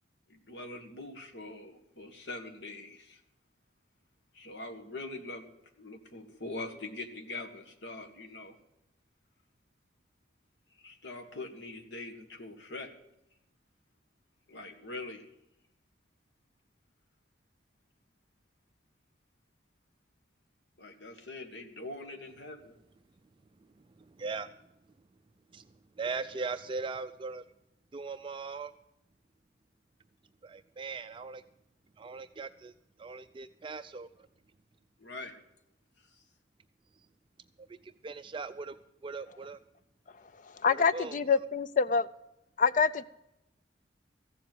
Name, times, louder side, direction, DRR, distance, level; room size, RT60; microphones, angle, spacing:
voice 1, 0.3-3.2 4.3-5.5 5.8-8.6 10.8-12.9 14.5-15.3 20.8-22.8 35.0-35.3 36.1-36.2, left 2 dB, 75° left, 5 dB, 1.7 m, -43 dB
voice 2, 24.1-24.5 25.5-25.7 26.0-27.4 27.9-28.7 30.4-31.4 32.0-32.7 33.0-34.3 37.6-38.8 39.0-39.6 40.7-41.5, right 4 dB, 30° right, 10 dB, 0.4 m, -39 dB
voice 3, 40.6-42.1 42.6-43.0, left 5 dB, 45° left, 15 dB, 0.5 m, -26 dB
15.0 x 7.4 x 7.9 m, 0.86 s
head